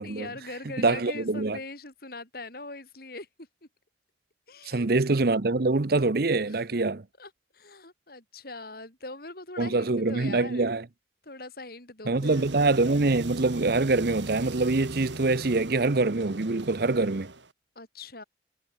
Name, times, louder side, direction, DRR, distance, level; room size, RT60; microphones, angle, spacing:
voice 1, 0.0-3.3 4.5-4.9 6.5-6.8 7.2-10.7 11.2-12.5 17.8-18.2, left 2 dB, 55° left, 5.4 m, -42 dB
voice 2, 0.8-1.6 4.7-7.0 9.6-10.8 12.1-17.3, right 3 dB, 55° right, 0.8 m, -24 dB
sound 1, 12.2-17.5, right 2 dB, 80° right, 4.0 m, -40 dB
head